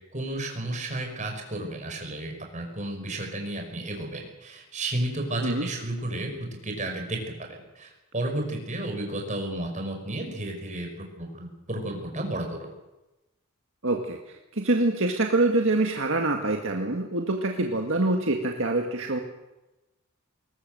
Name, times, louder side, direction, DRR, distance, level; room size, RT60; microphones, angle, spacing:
voice 1, 0.1-6.3 6.6-12.7, right 1 dB, 35° right, 3 dB, 5.5 m, -32 dB
voice 2, 13.8-19.2, right 2 dB, 60° right, 2 dB, 1.9 m, -25 dB
21.5 x 19.5 x 7.8 m, 1.0 s
head